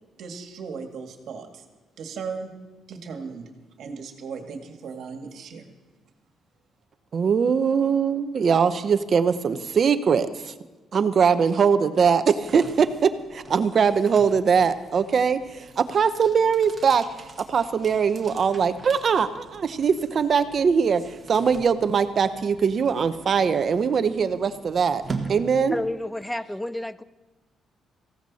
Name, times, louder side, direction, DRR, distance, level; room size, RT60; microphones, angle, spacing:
voice 1, 0.2-1.6 2.0-2.5 2.9-3.5 3.8-5.7, right 5 dB, 70° right, 4 dB, 2.0 m, -36 dB
voice 2, 7.1-10.5 10.9-17.0 17.5-25.0 25.3-25.8, right 6 dB, 50° right, 11 dB, 0.9 m, -21 dB
sound 1, 12.1-26.2, right 4 dB, 35° right, 1.8 m, -42 dB
voice 3, 25.7-27.0, left 1 dB, 5° left, 16 dB, 0.5 m, -30 dB
18.0 x 15.5 x 4.2 m, 1.3 s
cardioid pair, 90°, 0 cm